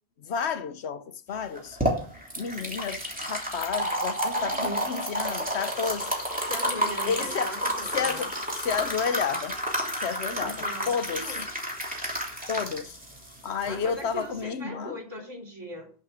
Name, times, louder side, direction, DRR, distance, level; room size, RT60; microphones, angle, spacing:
voice 1, 0.2-1.8 2.4-6.1 7.1-7.6 7.9-9.6 10.0-11.4 12.5-13.0 13.4-15.0, left 6 dB, 85° left, 1.2 m, -31 dB
sound 1, 1.4-14.4, equal, 10° right, 3.1 m, -31 dB
voice 2, 4.3-4.9 6.5-8.3 10.4-11.4 13.6-15.9, equal, 25° right, 2.9 m, -39 dB
11.0 x 5.8 x 6.7 m
omnidirectional pair, 1.1 m